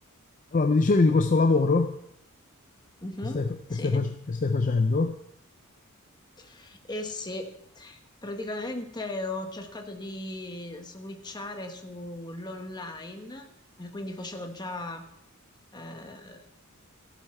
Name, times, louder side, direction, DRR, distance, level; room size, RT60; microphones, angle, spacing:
voice 1, 0.5-2.0 3.2-5.1, left 3 dB, 35° left, 8 dB, 0.5 m, -23 dB
voice 2, 3.0-3.4 3.7-4.0 6.4-13.5 13.8-15.0 15.7-16.4, left 2 dB, 20° left, 4 dB, 1.2 m, -37 dB
15.0 x 8.3 x 4.3 m, 0.78 s
head